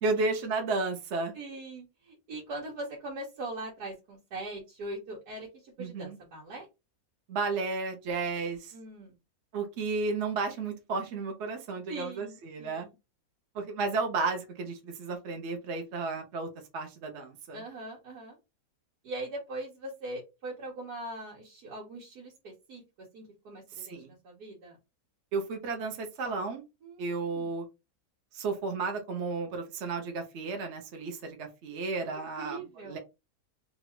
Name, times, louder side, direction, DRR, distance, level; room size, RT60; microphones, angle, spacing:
voice 1, 0.0-1.3 5.8-6.2 7.3-8.7 9.5-12.9 13.5-17.6 23.8-24.1 25.3-26.6 27.0-27.6 28.3-33.0, right 3 dB, 55° right, 4 dB, 0.9 m, -33 dB
voice 2, 1.3-6.7 8.7-9.1 11.9-12.9 17.5-18.4 19.0-22.8 23.1-24.8 26.8-27.5 32.1-33.0, right 2 dB, 80° right, -4 dB, 1.5 m, -41 dB
3.0 x 2.4 x 2.9 m, 0.25 s
omnidirectional pair, 1.6 m